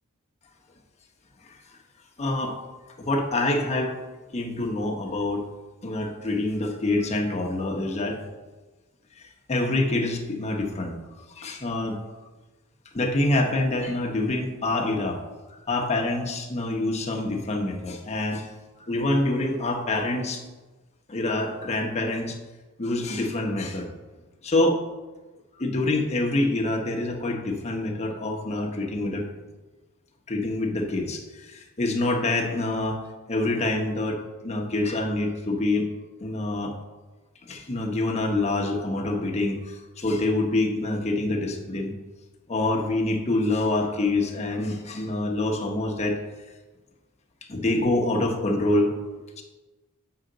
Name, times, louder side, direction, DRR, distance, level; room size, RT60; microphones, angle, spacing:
voice 1, 2.2-2.6 3.0-4.0 4.3-5.5 5.8-8.2 9.5-11.0 11.4-12.0 12.9-15.2 15.7-18.5 18.8-20.4 21.1-22.4 22.8-23.9 24.4-24.8 25.6-29.3 30.3-33.0 33.3-35.8 36.2-36.7 37.5-41.9 42.5-46.2 47.5-48.9 49.4-49.5, left 2 dB, 30° left, 1 dB, 0.9 m, -26 dB
7.7 x 5.7 x 3.9 m, 1.2 s
head